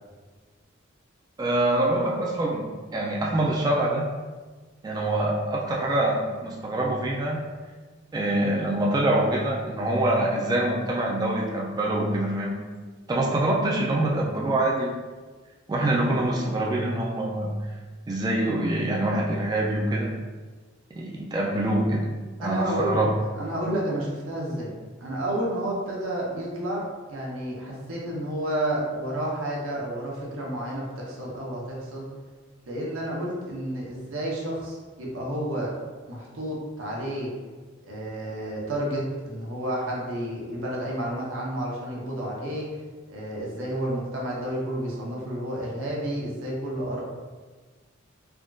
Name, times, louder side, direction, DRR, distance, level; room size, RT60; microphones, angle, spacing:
voice 1, 1.4-4.1 4.8-7.4 8.1-12.6 13.1-14.9 15.7-17.6 18.1-20.1 20.9-22.1 22.4-23.1, right 1 dB, 20° right, -2 dB, 0.3 m, -25 dB
voice 2, 22.4-23.0 23.3-24.7 25.0-26.8 27.1-32.1 32.7-35.7 36.1-37.3 37.9-42.7 43.1-47.0, right 1 dB, 85° right, -4 dB, 0.8 m, -30 dB
3.4 x 2.5 x 2.3 m, 1.4 s
head